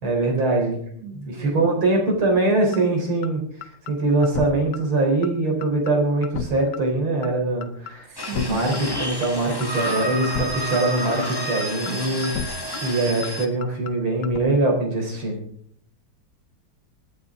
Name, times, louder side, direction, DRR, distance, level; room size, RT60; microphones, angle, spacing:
voice 1, 0.0-0.8 1.1-15.4, right 2 dB, 80° right, 1 dB, 4.6 m, -23 dB
voice 2, 1.0-1.6 8.0-8.7, right 4 dB, 55° right, 0 dB, 3.1 m, -37 dB
sound 1, 2.7-2.8 3.2-3.3 3.6-3.9 4.2-4.5 4.7-4.8 5.2-5.3 5.6-5.9 6.2-6.5 6.7-6.8 7.2-7.3 7.6-7.9 8.2-8.5 8.7-8.8 9.2-9.3 9.6-9.9 10.2-10.5 10.7-10.8 11.2-11.3 11.6-11.9 12.2-12.5 12.7-12.8 13.2-13.3 13.6-13.9 14.2-14.4, left 7 dB, 60° left, 1.4 m, -31 dB
sound 2, 8.2-13.5, right 1 dB, 15° left, 1.3 m, -30 dB
27.0 x 9.5 x 3.6 m, 0.64 s
omnidirectional pair, 2.3 m